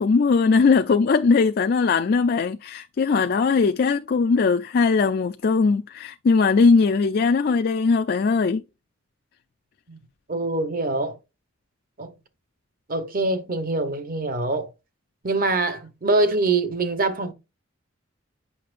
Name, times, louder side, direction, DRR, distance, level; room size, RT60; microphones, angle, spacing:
voice 1, 0.0-8.6, left 4 dB, 50° left, 0.4 m, -20 dB
voice 2, 10.3-11.2 12.0-12.1 12.9-14.7 15.2-17.3, right 2 dB, 45° right, 1.0 m, -24 dB
8.4 x 5.8 x 2.5 m
head